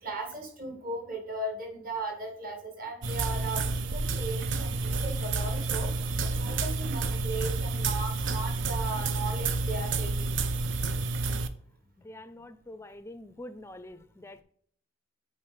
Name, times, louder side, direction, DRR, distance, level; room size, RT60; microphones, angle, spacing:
voice 1, 0.0-6.0 6.4-10.3, right 2 dB, 45° right, 1.7 m, -37 dB
sound 1, 3.0-11.5, right 3 dB, 70° right, 0.5 m, -30 dB
voice 2, 12.0-14.4, left 1 dB, 15° left, 0.4 m, -45 dB
8.7 x 4.7 x 3.3 m
head